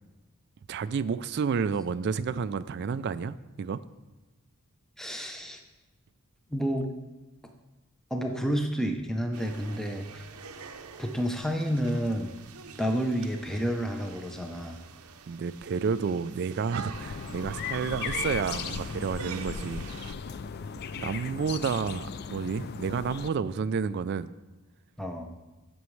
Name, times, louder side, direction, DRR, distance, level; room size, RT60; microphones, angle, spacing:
voice 1, 0.7-3.8 15.3-19.9 21.0-24.3, right 5 dB, 50° right, 14 dB, 0.3 m, -30 dB
voice 2, 5.0-5.6 6.5-6.9 8.1-10.3 11.0-12.3 12.8-14.8 25.0-25.3, equal, ahead, 3 dB, 0.6 m, -30 dB
sound 1, 9.3-20.1, right 6 dB, 85° right, 0.6 m, -45 dB
sound 2, 16.9-23.3, left 6 dB, 45° left, 0.3 m, -37 dB
16.0 x 6.2 x 3.2 m, 1.1 s
head